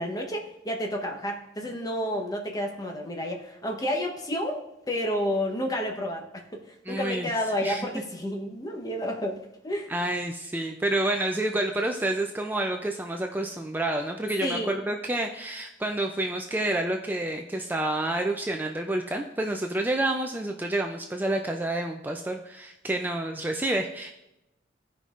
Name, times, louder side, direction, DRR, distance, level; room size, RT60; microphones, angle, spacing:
voice 1, 0.0-9.4 9.6-9.9 14.4-14.7, equal, 20° left, 1 dB, 0.9 m, -30 dB
voice 2, 6.9-7.3 7.6-7.9 9.9-24.1, right 1 dB, 10° right, 3 dB, 0.3 m, -29 dB
15.0 x 5.3 x 2.5 m, 0.90 s
head